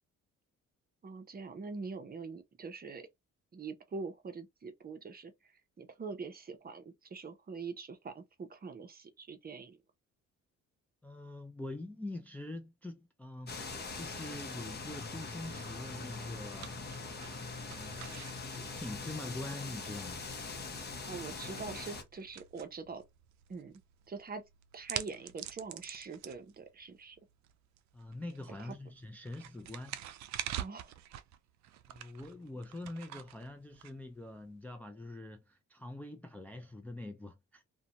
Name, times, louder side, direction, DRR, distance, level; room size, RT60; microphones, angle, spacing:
voice 1, 1.0-3.1 3.5-9.8 20.8-23.0 23.5-23.8 24.1-24.4 24.7-27.2 28.6-28.7 30.6-30.9, right 4 dB, 30° right, 0.7 m, -44 dB
voice 2, 11.0-16.7 17.6-18.0 18.5-20.2 27.9-30.0 31.9-37.6, left 2 dB, 5° left, 0.3 m, -44 dB
sound 1, 13.5-22.0, left 4 dB, 35° left, 0.8 m, -42 dB
sound 2, 15.3-34.5, right 11 dB, 70° right, 0.4 m, -47 dB
2.5 x 2.2 x 2.8 m
cardioid pair, 90°, 30 cm